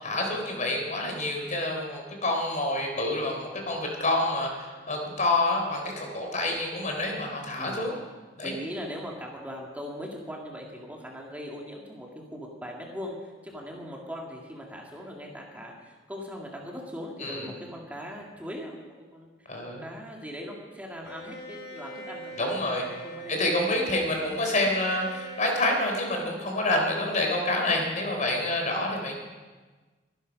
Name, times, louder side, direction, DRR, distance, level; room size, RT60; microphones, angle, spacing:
voice 1, 0.0-8.0 8.4-8.5 17.2-17.5 19.5-19.9 22.4-22.8 23.3-29.2, left 2 dB, 45° left, 2 dB, 3.8 m, -28 dB
voice 2, 7.6-7.9 8.4-18.7 19.1-22.7 23.0-23.7, equal, 10° right, -1 dB, 2.3 m, -40 dB
Bowed string instrument, 21.0-27.1, right 2 dB, 60° left, 2.5 m, -44 dB
24.0 x 11.0 x 5.4 m, 1.3 s
head